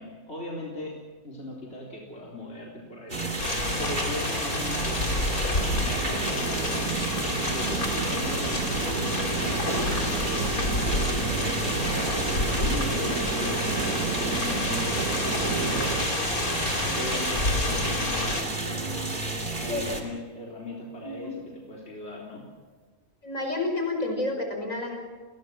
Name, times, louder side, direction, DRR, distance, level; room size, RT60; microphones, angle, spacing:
voice 1, 0.0-3.5 3.8-22.5, left 1 dB, 50° left, -3 dB, 4.1 m, -39 dB
sound 1, 3.1-20.0, right 2 dB, 35° right, 2.9 m, -32 dB
sound 2, 3.4-18.4, left 2 dB, 90° left, 3.9 m, -29 dB
sound 3, 5.6-16.1, right 7 dB, 85° right, 1.6 m, -33 dB
voice 2, 21.0-21.3 23.2-24.9, left 2 dB, 65° left, 3 dB, 5.7 m, -30 dB
29.5 x 21.5 x 6.3 m, 1.4 s
omnidirectional pair, 1.5 m